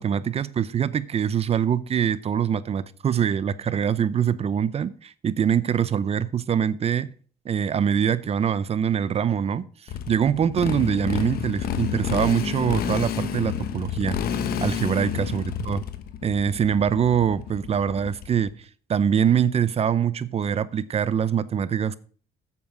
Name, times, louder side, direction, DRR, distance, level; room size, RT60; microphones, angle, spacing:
voice 1, 0.0-7.1 7.4-9.6 10.1-14.2 14.6-15.8 16.2-18.5 18.9-22.0, right 8 dB, 35° right, 17 dB, 0.6 m, -24 dB
Motorcycle, 9.9-18.5, left 8 dB, 65° left, 1.1 m, -29 dB
8.3 x 7.1 x 5.0 m, 0.42 s
cardioid pair, 110°, 17 cm